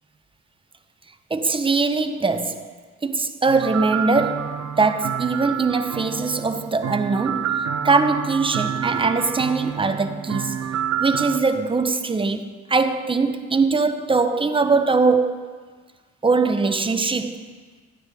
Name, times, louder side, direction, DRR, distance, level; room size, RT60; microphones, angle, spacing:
voice 1, 1.3-2.7 3.0-10.7 11.0-15.5 16.2-17.4, right 4 dB, 15° right, 0.7 m, -22 dB
sound 1, 3.5-11.4, right 8 dB, 65° right, 0.7 m, -28 dB
13.0 x 9.4 x 3.5 m
cardioid pair, 90°, 30 cm